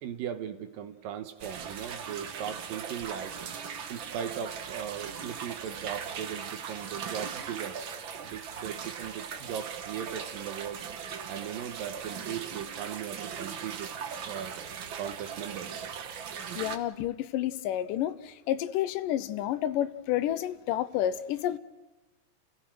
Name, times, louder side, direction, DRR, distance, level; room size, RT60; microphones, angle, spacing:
voice 1, 0.0-3.4 3.9-8.0 8.2-10.8 11.3-13.9 14.3-14.6 14.9-15.9, right 9 dB, 90° right, 3.0 m, -38 dB
sound 1, 1.4-16.8, right 7 dB, 60° right, 1.3 m, -39 dB
voice 2, 16.6-21.6, left 12 dB, 80° left, 2.4 m, -30 dB
29.5 x 16.0 x 6.3 m
omnidirectional pair, 3.9 m